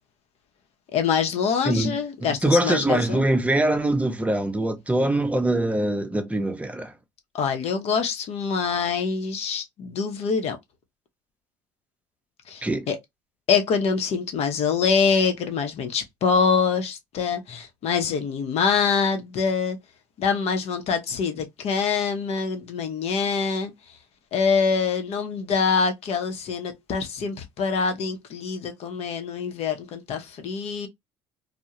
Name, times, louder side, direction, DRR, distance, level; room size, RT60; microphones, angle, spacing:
voice 1, 0.9-3.3 7.3-10.6 12.5-13.0 13.5-19.8 20.2-23.7 24.3-30.9, left 5 dB, 60° left, 0.7 m, -25 dB
voice 2, 1.6-2.0 2.4-6.9 12.6-12.9, right 1 dB, 10° right, 0.6 m, -23 dB
2.2 x 2.1 x 2.8 m
hypercardioid pair, 65°, 12 cm